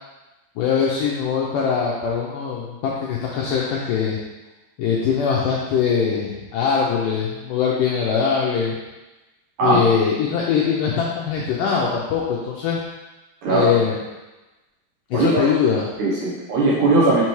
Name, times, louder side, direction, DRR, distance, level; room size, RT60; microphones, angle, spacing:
voice 1, 0.6-4.2 4.8-8.8 9.6-12.8 13.5-14.0 15.1-15.9, left 6 dB, 90° left, -3 dB, 1.9 m, -22 dB
voice 2, 13.4-13.7 15.1-15.3 16.0-17.3, right 2 dB, 70° right, -6 dB, 2.0 m, -18 dB
6.0 x 5.8 x 3.1 m, 1.1 s
omnidirectional pair, 4.6 m